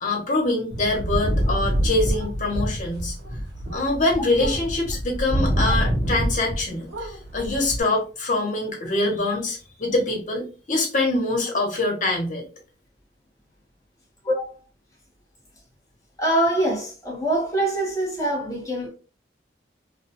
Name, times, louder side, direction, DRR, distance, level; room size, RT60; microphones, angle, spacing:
voice 1, 0.0-3.1 3.7-12.4, left 2 dB, 45° left, 0.9 m, -24 dB
sound 1, 0.7-6.6 6.9-7.8, equal, 80° right, 1.0 m, -26 dB
voice 2, 16.2-18.9, right 1 dB, 20° left, 1.1 m, -24 dB
2.4 x 2.3 x 2.8 m
head